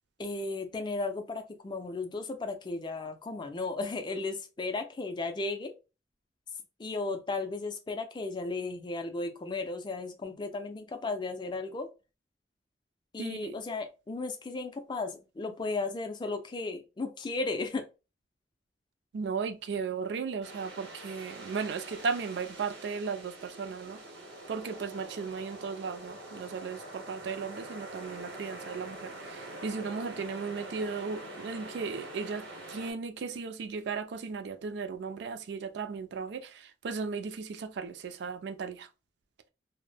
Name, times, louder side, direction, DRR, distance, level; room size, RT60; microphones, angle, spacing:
voice 1, 0.2-5.8 6.8-11.9 13.1-17.8, left 3 dB, 25° left, 0.3 m, -35 dB
voice 2, 13.2-13.5 19.1-24.0 24.5-38.9, right 5 dB, 65° right, 0.3 m, -36 dB
sound 1, 20.4-32.9, right 1 dB, 85° right, 0.8 m, -45 dB
2.1 x 2.0 x 3.2 m
head